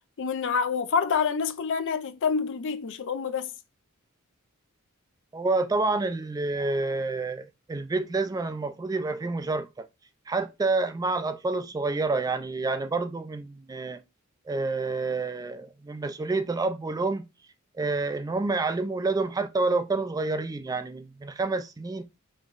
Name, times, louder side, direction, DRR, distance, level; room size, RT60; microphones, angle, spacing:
voice 1, 0.2-3.5, left 6 dB, 60° left, 0.5 m, -27 dB
voice 2, 5.3-9.9 10.3-14.0 14.5-17.2 17.8-22.0, right 3 dB, 15° right, 0.3 m, -28 dB
5.3 x 3.0 x 2.4 m
head